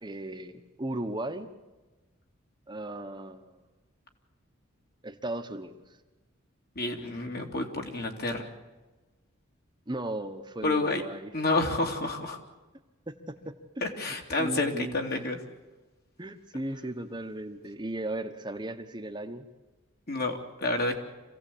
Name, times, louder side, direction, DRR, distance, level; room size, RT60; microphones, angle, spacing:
voice 1, 0.0-1.5 2.7-3.6 5.0-6.0 9.9-11.3 13.1-14.1 14.4-15.3 16.2-19.4, right 1 dB, 20° right, 5 dB, 1.2 m, -36 dB
voice 2, 6.7-8.5 10.6-11.0 11.3-12.4 13.8-15.4 20.1-21.0, left 2 dB, 50° left, 3 dB, 3.0 m, -29 dB
26.0 x 16.5 x 8.6 m, 1.2 s
head